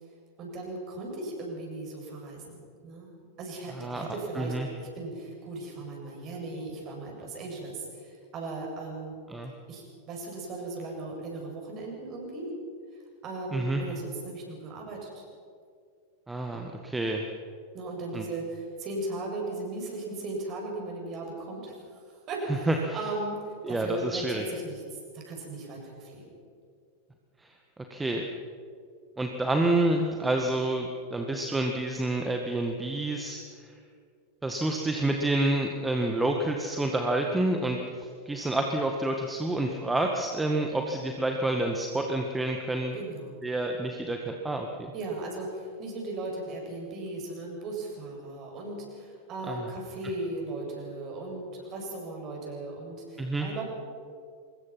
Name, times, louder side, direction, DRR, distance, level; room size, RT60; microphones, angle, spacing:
voice 1, 0.4-9.2 9.7-12.5 13.2-15.2 17.7-21.8 22.3-24.8 25.1-26.2 37.3-37.5 42.9-43.3 44.9-53.6, right 2 dB, 35° right, 0 dB, 7.6 m, -37 dB
voice 2, 4.4-4.7 9.3-9.5 13.5-13.8 16.3-17.3 18.1-18.2 22.7-23.0 23.6-24.4 27.9-28.2 29.2-33.4 34.4-43.0 43.4-44.9 49.5-49.7 53.2-53.5, right 2 dB, 10° right, 3 dB, 1.7 m, -28 dB
25.0 x 21.5 x 5.9 m, 2.2 s
figure-of-eight pair, 90°, 0 cm